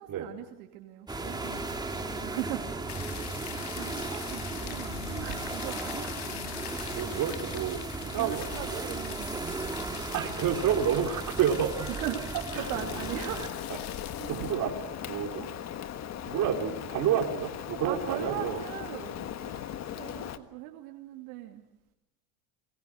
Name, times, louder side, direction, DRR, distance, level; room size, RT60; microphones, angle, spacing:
voice 1, 0.0-3.3 3.8-6.1 8.1-9.6 11.9-13.7 14.2-14.8 17.8-21.6, right 13 dB, 80° right, 3 dB, 2.6 m, -40 dB
sound 1, 1.1-13.5, right 2 dB, 10° right, 2.5 m, -36 dB
sound 2, 2.9-14.5, left 13 dB, 65° left, 2.5 m, -43 dB
voice 2, 6.9-8.5 10.1-11.9 12.5-12.7 14.3-14.7 15.0-15.5 16.3-18.6, right 9 dB, 45° right, 2 dB, 4.5 m, -29 dB
Rain, 12.5-20.4, left 10 dB, 35° left, 1.5 m, -38 dB
28.5 x 21.5 x 6.4 m, 0.91 s
supercardioid pair, 120°, 44 cm